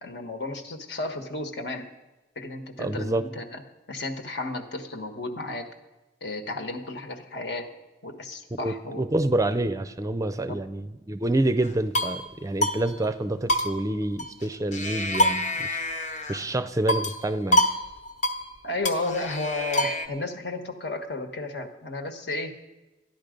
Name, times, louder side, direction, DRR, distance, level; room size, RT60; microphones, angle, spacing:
voice 1, 0.0-1.9 2.3-3.6 3.9-5.7 6.2-7.7 8.0-9.1 10.5-10.6 18.6-22.5, left 2 dB, 70° left, 7 dB, 1.4 m, -33 dB
voice 2, 2.8-3.2 8.6-15.8 16.3-17.7, right 1 dB, 20° right, 11 dB, 0.5 m, -27 dB
sound 1, 11.6-12.2 12.6-12.8 13.0-13.1 13.5-14.5 14.7-16.4 16.9-17.2 17.5-17.8 18.0-18.4 18.8-20.1, equal, 40° left, 1.1 m, -26 dB
13.5 x 10.5 x 5.2 m, 1.1 s
head